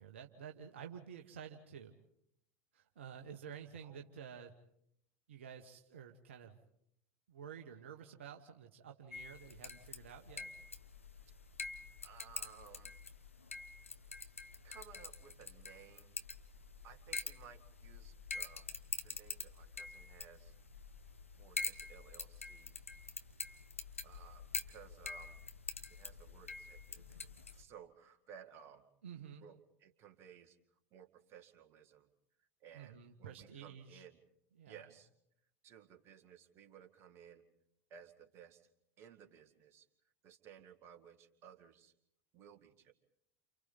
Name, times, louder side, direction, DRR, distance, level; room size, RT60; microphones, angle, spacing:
voice 1, 0.0-1.9 2.7-4.5 5.3-6.6 7.3-10.5 29.0-29.4 32.7-34.0 34.6-34.8, right 8 dB, 65° right, 4 dB, 1.4 m, -51 dB
sound 1, 9.1-27.6, left 4 dB, 80° left, 1.1 m, -46 dB
voice 2, 12.0-12.9 14.6-16.1 16.8-18.7 19.0-20.5 21.4-22.7 24.0-25.4 25.9-28.9 29.4-30.6 30.9-32.1 32.6-34.2 34.7-35.1 35.6-37.5 37.9-38.6 39.0-39.9 40.2-41.9 42.3-42.9, right 8 dB, 40° right, 6 dB, 1.9 m, -58 dB
30.0 x 28.5 x 4.1 m, 0.74 s
figure-of-eight pair, 80°, 7 cm